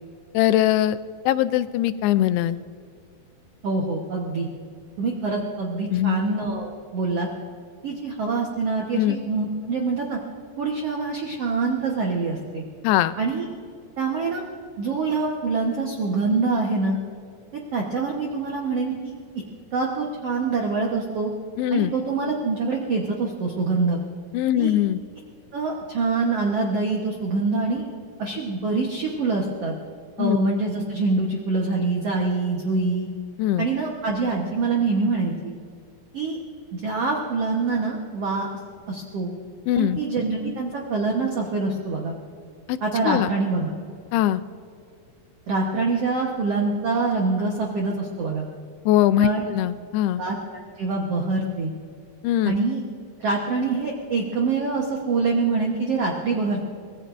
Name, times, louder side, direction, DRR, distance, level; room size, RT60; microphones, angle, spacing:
voice 1, 0.3-1.0 1.3-2.6 5.9-6.2 8.9-9.2 12.8-13.1 21.6-21.9 24.3-25.0 30.2-30.4 33.4-33.7 39.7-40.0 42.7-42.8 43.0-43.3 44.1-44.4 48.9-50.2 52.2-52.6, left 12 dB, 90° left, 12 dB, 2.6 m, -21 dB
voice 2, 3.6-4.5 5.0-7.3 7.8-10.2 10.6-12.6 13.2-13.5 14.0-14.4 14.8-17.0 17.7-19.1 19.7-21.3 21.7-24.0 24.6-24.7 25.5-27.8 28.2-29.7 30.2-33.1 33.6-35.5 36.1-36.4 36.7-38.5 38.9-39.3 39.8-42.1 42.8-43.7 45.5-48.5 49.2-49.4 50.2-51.7 52.4-52.8 53.2-56.6, right 3 dB, 75° right, -1 dB, 1.4 m, -25 dB
24.5 x 19.5 x 2.5 m, 2.2 s
omnidirectional pair, 4.5 m